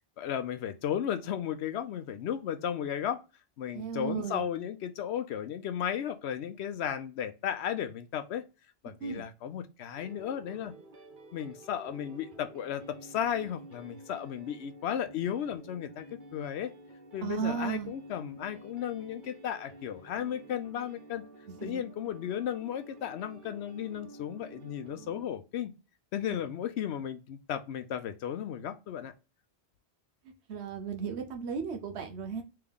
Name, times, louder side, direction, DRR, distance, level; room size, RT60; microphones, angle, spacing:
voice 1, 0.2-3.2 3.6-8.4 8.8-10.7 11.3-16.1 16.3-16.7 17.1-21.2 21.6-25.7 26.1-29.1, left 9 dB, 80° left, 0.8 m, -34 dB
voice 2, 3.7-4.4 9.0-9.3 17.2-17.9 21.6-21.8 30.5-32.4, right 6 dB, 85° right, 1.1 m, -35 dB
sound 1, 9.9-25.3, right 2 dB, 55° right, 0.8 m, -51 dB
3.5 x 3.3 x 3.5 m
omnidirectional pair, 1.1 m